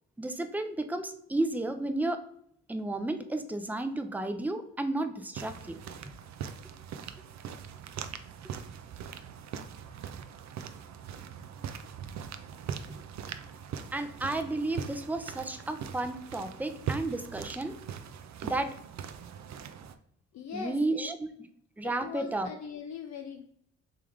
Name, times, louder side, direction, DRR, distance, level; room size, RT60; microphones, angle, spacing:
voice 1, 0.2-2.2 2.7-5.8 13.9-17.8 18.4-18.7 20.5-21.3 21.8-22.5, right 2 dB, 5° right, 7 dB, 0.5 m, -32 dB
sound 1, 5.3-19.9, right 7 dB, 55° right, 0.5 m, -41 dB
voice 2, 20.3-21.0 21.8-23.5, left 6 dB, 50° left, 4 dB, 0.5 m, -41 dB
3.4 x 3.3 x 3.5 m, 0.67 s
hypercardioid pair, 50°, 34 cm